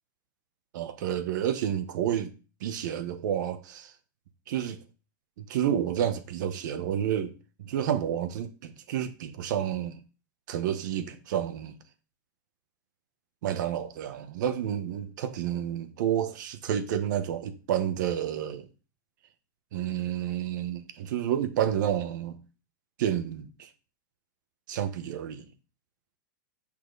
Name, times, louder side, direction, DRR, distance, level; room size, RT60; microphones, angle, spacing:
voice 1, 0.7-2.3 2.6-3.9 4.5-4.8 5.4-10.0 10.5-11.8 13.4-18.7 19.7-22.4 23.0-23.7 24.7-25.5, right 10 dB, 65° right, 1.3 m, -30 dB
8.6 x 5.7 x 4.1 m
supercardioid pair, 140°, 11 cm